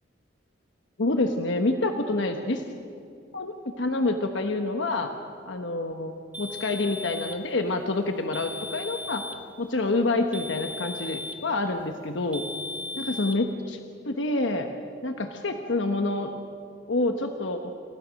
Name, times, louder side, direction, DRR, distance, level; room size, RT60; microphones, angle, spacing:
voice 1, 1.0-2.6 3.3-5.1 5.4-9.2 9.6-12.5 13.0-13.8 14.0-14.7 15.0-16.3 16.9-17.7, left 2 dB, 70° left, 5 dB, 1.1 m, -27 dB
sound 1, 6.3-7.5 8.3-9.5 10.3-11.5 12.3-13.4, left 2 dB, 5° right, 1.2 m, -37 dB
29.0 x 15.5 x 6.4 m, 2.6 s
head